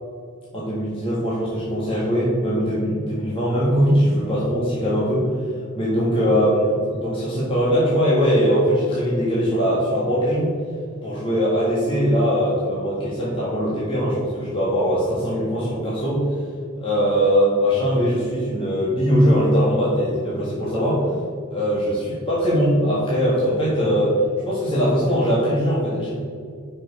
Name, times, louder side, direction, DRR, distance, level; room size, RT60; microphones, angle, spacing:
voice 1, 0.5-5.3 5.7-10.5 11.0-16.2 16.8-21.1 21.5-24.2 24.4-26.1, equal, 25° left, -8 dB, 1.6 m, -21 dB
5.9 x 5.2 x 5.3 m, 2.1 s
head